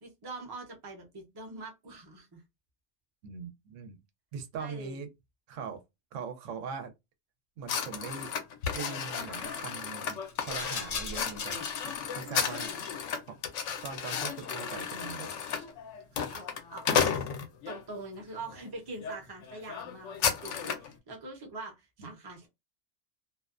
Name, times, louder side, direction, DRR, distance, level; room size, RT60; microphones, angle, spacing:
voice 1, 0.0-2.4 4.6-5.0 12.2-12.8 16.1-17.3 17.6-22.5, right 2 dB, 25° right, 0.6 m, -44 dB
voice 2, 3.2-4.0 4.3-5.1 5.5-5.8 6.1-6.9 7.6-8.3 8.7-12.7 13.3-15.4 22.0-22.1, right 6 dB, 85° right, 0.9 m, -41 dB
sound 1, 7.7-17.8 18.4-18.6 19.0-19.2 19.4-20.9, left 7 dB, 80° left, 0.9 m, -33 dB
Rattle, 8.6-9.0 10.0-12.0 12.3-13.0 13.8-14.5 15.1-15.7, left 5 dB, 55° left, 0.4 m, -40 dB
2.4 x 2.1 x 2.4 m
omnidirectional pair, 1.2 m